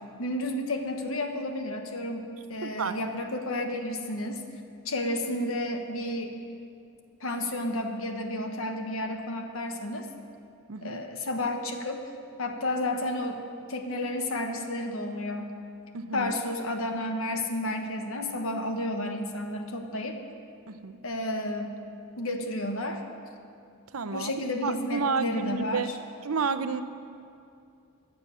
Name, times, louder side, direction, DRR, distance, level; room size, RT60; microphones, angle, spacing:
voice 1, 0.2-4.4 4.8-6.4 7.2-10.1 10.8-12.0 12.4-13.4 13.7-15.5 16.1-20.2 21.0-21.7 22.2-23.0 24.1-26.0, left 1 dB, 75° left, 5 dB, 1.4 m, -31 dB
voice 2, 2.6-3.0 10.7-11.0 15.9-16.3 20.7-21.0 23.9-24.3 24.6-25.9 26.2-26.8, right 4 dB, 90° right, 11 dB, 0.7 m, -30 dB
22.5 x 7.8 x 6.7 m, 2.5 s
head